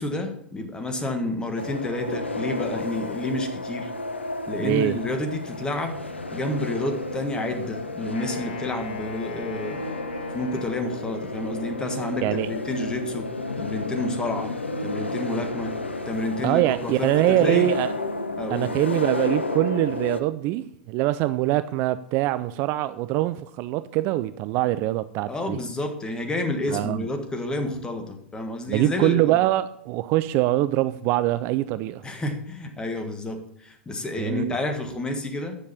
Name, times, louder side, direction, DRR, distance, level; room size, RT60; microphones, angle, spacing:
voice 1, 0.0-3.9 4.5-9.8 10.3-13.3 13.6-14.6 14.8-15.7 16.0-17.7 18.4-18.7 25.3-29.4 32.0-35.5, left 2 dB, 15° left, 5 dB, 1.6 m, -30 dB
sound 1, 1.6-20.2, left 2 dB, 85° left, 0.8 m, -32 dB
voice 2, 4.6-4.9 12.2-12.5 16.4-17.9 18.5-25.6 26.7-27.0 28.7-32.0 34.2-34.5, right 15 dB, 40° right, 14 dB, 0.4 m, -23 dB
Wind instrument woodwind instrument, 8.1-11.6, left 2 dB, 65° left, 2.7 m, -38 dB
9.8 x 6.5 x 5.5 m, 0.73 s
figure-of-eight pair, 95°, 6 cm